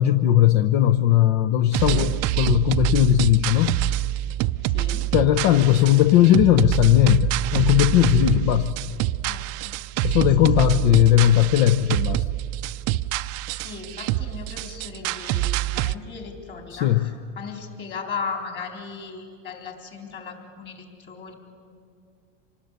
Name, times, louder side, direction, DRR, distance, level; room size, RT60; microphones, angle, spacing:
voice 1, 0.0-3.8 5.1-8.7 10.0-12.3 16.7-17.0, left 12 dB, 60° left, 11 dB, 0.9 m, -18 dB
sound 1, 1.7-15.9, right 15 dB, 45° right, 0.5 m, -26 dB
voice 2, 1.8-2.1 4.6-5.1 9.2-9.7 10.2-10.7 10.9-11.0 13.5-21.3, left 5 dB, 30° left, 3 dB, 3.9 m, -37 dB
26.5 x 19.0 x 8.3 m, 2.3 s
supercardioid pair, 135°, 36 cm